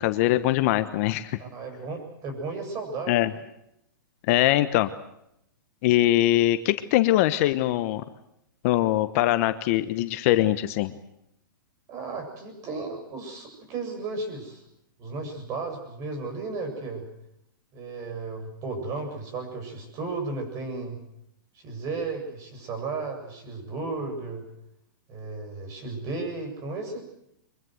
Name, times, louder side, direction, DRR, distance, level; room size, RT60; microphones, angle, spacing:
voice 1, 0.0-1.4 3.1-3.3 4.3-4.9 5.8-8.0 8.6-10.9, left 15 dB, 40° left, 11 dB, 1.1 m, -22 dB
voice 2, 1.4-3.4 11.9-14.6 15.0-17.1 17.7-21.0 21.6-24.5 25.1-27.0, right 3 dB, 30° right, 5 dB, 7.7 m, -34 dB
24.0 x 22.0 x 7.9 m, 0.79 s
hypercardioid pair, 145°, 12 cm